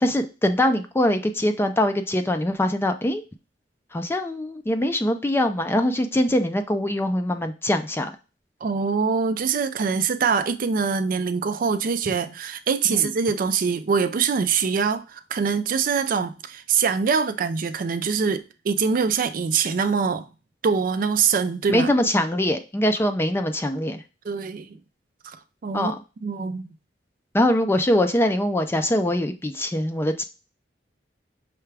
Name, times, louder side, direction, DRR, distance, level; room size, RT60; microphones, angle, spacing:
voice 1, 0.0-3.2 3.9-8.1 12.9-13.1 21.7-24.0 25.7-26.0 27.3-30.2, left 1 dB, 15° left, 0.4 m, -23 dB
voice 2, 8.6-20.3 20.6-21.9 24.2-24.8 25.2-25.4 25.6-25.9 26.2-26.6, right 5 dB, 50° right, 0.4 m, -24 dB
5.8 x 2.3 x 3.3 m
head